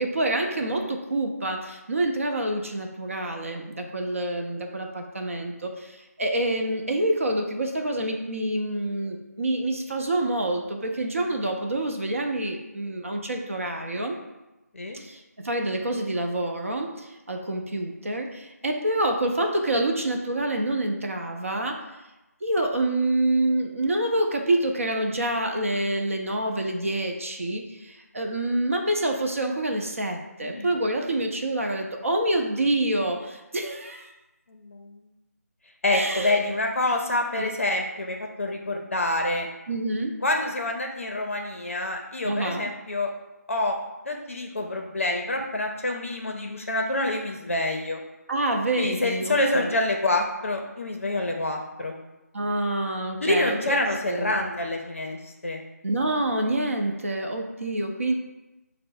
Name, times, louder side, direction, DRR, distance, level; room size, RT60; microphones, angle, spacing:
voice 1, 0.0-14.2 15.0-21.8 22.4-34.1 35.9-36.4 37.4-37.5 39.7-40.2 42.2-42.7 48.3-49.8 52.3-53.8 54.1-54.4 55.8-58.1, right 1 dB, 55° right, 3 dB, 0.6 m, -27 dB
voice 2, 34.5-34.9 35.8-39.5 40.2-43.1 43.5-43.8 44.1-48.0 48.8-51.9 53.2-55.6, left 2 dB, 55° left, 2 dB, 0.5 m, -27 dB
5.0 x 2.0 x 4.6 m, 1.0 s
figure-of-eight pair, 160°, 9 cm